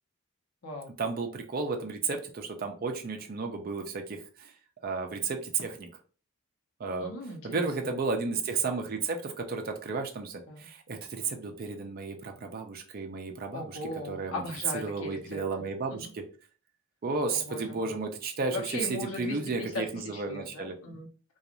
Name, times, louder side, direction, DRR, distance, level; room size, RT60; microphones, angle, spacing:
voice 1, 1.0-4.5 4.8-5.9 6.8-7.1 7.4-13.8 14.1-14.4 14.8-16.2 17.0-20.8, right 4 dB, 45° right, 3 dB, 0.4 m, -33 dB
voice 2, 7.0-7.7 10.5-10.7 13.5-15.4 15.9-16.1 17.3-17.9 18.5-21.1, left 1 dB, 70° left, 0 dB, 0.8 m, -38 dB
2.5 x 2.3 x 2.9 m, 0.40 s
head